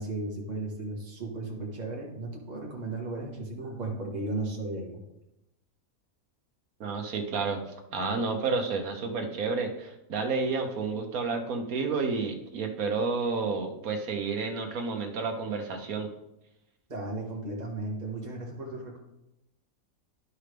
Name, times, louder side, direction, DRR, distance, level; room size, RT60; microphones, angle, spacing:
voice 1, 0.0-5.0 16.9-19.0, right 2 dB, 30° right, -2 dB, 1.6 m, -35 dB
voice 2, 6.8-7.6 7.9-16.1, right 4 dB, 75° right, 4 dB, 1.4 m, -30 dB
11.5 x 5.6 x 3.4 m, 0.88 s
omnidirectional pair, 1.5 m